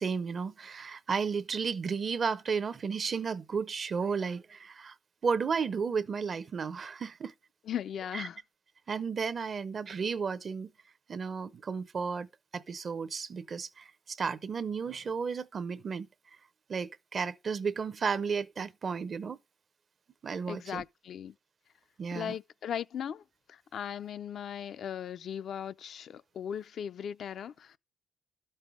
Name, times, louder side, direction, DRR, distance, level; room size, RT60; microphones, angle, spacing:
voice 1, 0.0-4.9 5.2-7.3 8.1-8.3 8.9-10.7 11.1-16.1 16.7-19.4 20.2-20.8 22.0-22.3, right 5 dB, 45° right, 0.7 m, -33 dB
voice 2, 7.7-8.4 20.5-21.3 22.1-23.2 23.5-27.8, left 9 dB, 65° left, 0.4 m, -38 dB
12.0 x 5.4 x 4.8 m
cardioid pair, 90°, 0 cm